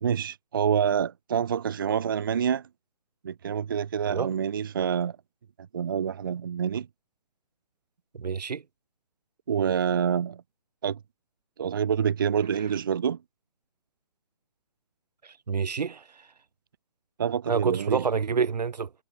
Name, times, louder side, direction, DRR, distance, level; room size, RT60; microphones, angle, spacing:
voice 1, 0.0-2.7 3.2-5.2 5.6-6.9 9.5-10.4 10.8-11.0 11.6-13.2 17.2-18.0, right 8 dB, 30° right, 0.6 m, -27 dB
voice 2, 8.1-8.6 15.2-16.3 17.5-18.9, right 6 dB, 80° right, 1.3 m, -28 dB
hypercardioid pair, 170°, 21 cm